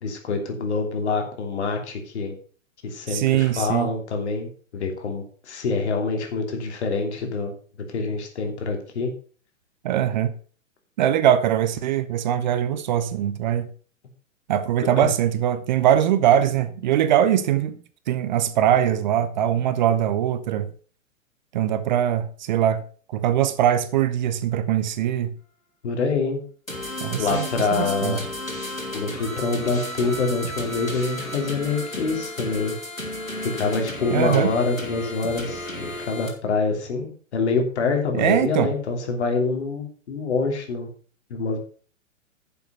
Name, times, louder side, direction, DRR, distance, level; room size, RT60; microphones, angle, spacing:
voice 1, 0.0-2.3 2.8-7.5 7.9-9.1 15.0-15.1 25.8-26.4 26.8-28.3 28.9-32.8 33.5-40.9 41.3-41.6, left 4 dB, 55° left, 3.0 m, -26 dB
voice 2, 3.1-3.9 9.8-10.3 11.0-13.7 14.5-17.8 18.1-20.7 21.5-22.8 23.1-25.3 27.0-28.2 34.1-34.5 38.1-38.7, right 10 dB, 35° right, 0.7 m, -22 dB
sound 1, 26.7-36.3, left 1 dB, 90° left, 3.5 m, -33 dB
9.9 x 7.0 x 5.6 m
figure-of-eight pair, 110°, 39 cm